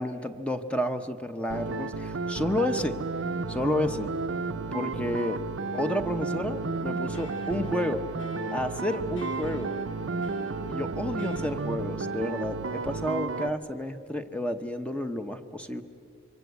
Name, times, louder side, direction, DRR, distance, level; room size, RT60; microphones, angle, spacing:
voice 1, 0.0-3.0 3.5-4.1 4.7-5.4 5.7-8.0 8.5-9.7 10.7-15.8, left 1 dB, 5° left, 7 dB, 0.8 m, -30 dB
sound 1, 1.5-13.5, right 3 dB, 80° right, 0.7 m, -32 dB
sound 2, 6.5-11.5, right 1 dB, 70° left, 3.0 m, -44 dB
26.0 x 24.0 x 8.2 m, 2.6 s
head